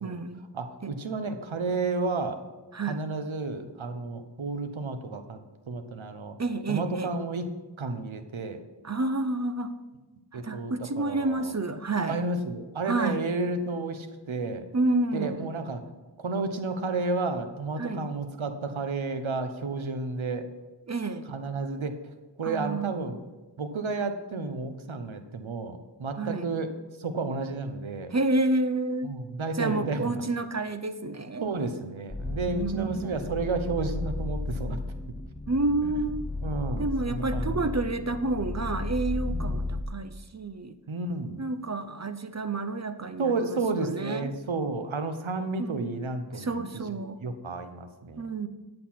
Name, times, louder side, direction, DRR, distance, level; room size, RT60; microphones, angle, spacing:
voice 1, 0.0-0.4 0.8-0.9 2.7-3.1 6.4-7.1 8.8-9.7 10.3-12.2 12.9-13.2 14.7-15.5 17.8-18.1 20.9-21.3 22.4-22.9 26.2-26.4 28.1-29.1 29.6-31.4 32.5-33.2 35.5-36.3 36.8-40.8 41.4-43.5 43.8-44.3 45.6-45.9 46.3-47.2 48.2-48.5, right 2 dB, 35° right, 10 dB, 0.7 m, -29 dB
voice 2, 0.5-2.4 2.9-5.4 5.7-6.4 6.7-7.5 7.8-8.6 10.3-11.5 12.1-14.6 15.1-15.8 16.2-20.5 21.3-21.9 22.4-23.2 23.6-26.7 27.0-28.1 29.0-30.2 31.4-34.8 35.8-35.9 36.4-37.7 39.3-39.6 40.9-41.4 43.2-48.3, right 3 dB, 90° right, 8 dB, 1.0 m, -32 dB
sound 1, 32.1-39.8, left 2 dB, 10° left, 0.6 m, -34 dB
10.5 x 6.6 x 5.8 m, 1.2 s
wide cardioid pair, 60°, 46 cm